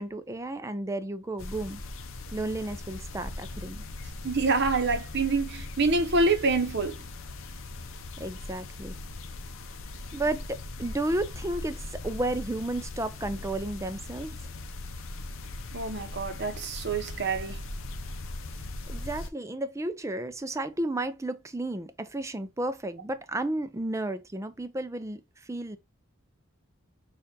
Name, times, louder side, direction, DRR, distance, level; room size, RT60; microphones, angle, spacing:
voice 1, 0.0-1.8 2.3-3.8 8.2-9.0 10.1-14.4 18.9-25.8, right 2 dB, 15° right, 0.4 m, -33 dB
sound 1, 1.4-19.3, left 2 dB, 65° left, 0.7 m, -39 dB
voice 2, 4.2-7.0 15.7-17.6, right 3 dB, 50° right, 0.8 m, -26 dB
6.6 x 2.5 x 2.7 m
head